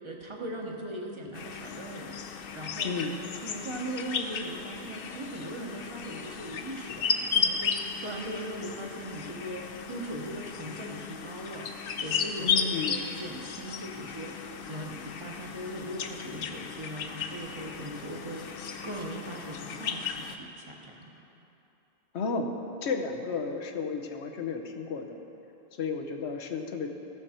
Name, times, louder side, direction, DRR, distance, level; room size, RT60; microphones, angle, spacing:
voice 1, 0.0-2.1 2.5-11.7 12.0-21.1, right 1 dB, 30° right, 0 dB, 1.0 m, -39 dB
sound 1, 1.3-20.4, left 6 dB, 65° left, 0.8 m, -35 dB
voice 2, 2.8-3.2 12.4-13.0 22.1-22.5 22.8-25.2 25.8-26.9, left 4 dB, 85° left, 4 dB, 1.1 m, -32 dB
14.5 x 6.7 x 4.3 m, 2.9 s
omnidirectional pair, 1.1 m